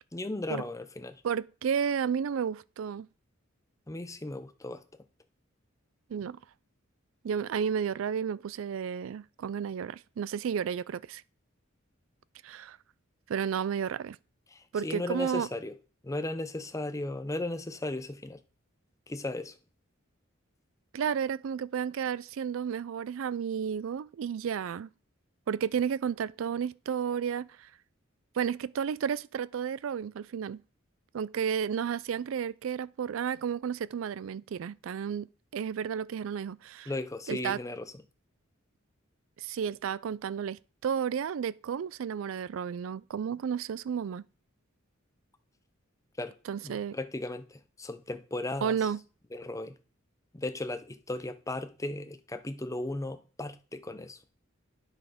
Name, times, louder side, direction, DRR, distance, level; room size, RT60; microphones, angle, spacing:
voice 1, 0.1-1.2 3.9-4.8 14.5-15.7 16.0-18.4 19.1-19.5 36.9-37.9 46.2-46.3 46.6-48.8 49.3-49.8 50.3-54.2, left 2 dB, 15° left, 0.6 m, -36 dB
voice 2, 1.2-3.1 6.1-6.4 7.2-11.2 12.4-12.8 13.3-14.2 14.7-15.5 20.9-24.9 25.5-27.7 28.3-30.6 31.1-35.3 35.5-36.9 37.3-37.6 39.4-44.2 46.5-47.0 48.6-49.0, right 7 dB, 70° right, 0.3 m, -32 dB
9.0 x 6.0 x 5.1 m
head